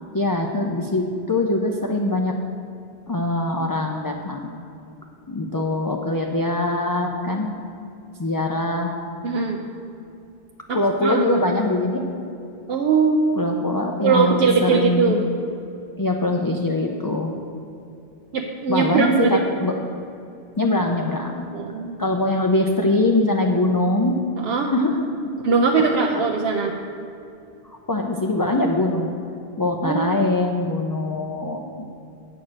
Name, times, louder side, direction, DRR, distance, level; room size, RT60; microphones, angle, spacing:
voice 1, 0.1-2.3 3.1-4.5 5.3-7.5 8.2-8.9 10.7-12.0 13.4-15.2 16.0-17.3 18.7-19.7 20.6-21.4 22.0-24.1 24.7-25.0 26.1-26.2 27.9-29.1 29.6-31.7, left 2 dB, 30° left, 1 dB, 0.4 m, -22 dB
voice 2, 9.2-9.6 10.7-11.3 12.7-13.2 14.0-15.2 18.3-19.4 21.5-22.0 24.4-24.7 25.4-26.8 29.8-30.2, right 5 dB, 75° right, 1 dB, 0.9 m, -21 dB
8.7 x 4.8 x 7.2 m, 2.6 s
omnidirectional pair, 1.0 m